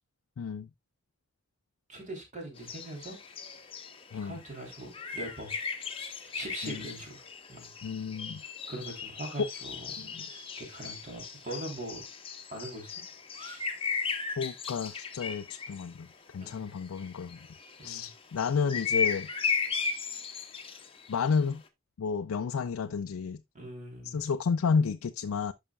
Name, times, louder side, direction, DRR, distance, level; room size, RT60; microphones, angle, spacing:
voice 1, 0.4-0.7 4.1-4.4 6.6-6.8 7.8-8.4 9.4-9.5 10.0-10.3 14.4-16.1 16.3-17.4 17.8-19.3 21.1-21.6 22.0-23.4 24.0-25.5, left 5 dB, 90° left, 0.4 m, -31 dB
voice 2, 1.9-3.2 4.1-5.5 6.0-7.7 8.7-10.2 10.6-12.0 12.5-13.0 13.4-13.7 16.4-16.6 17.8-18.1 23.5-24.2, right 1 dB, 35° right, 3.4 m, -42 dB
sound 1, 2.6-15.9 16.5-21.2, left 5 dB, 25° left, 0.9 m, -36 dB
11.0 x 5.6 x 2.3 m
head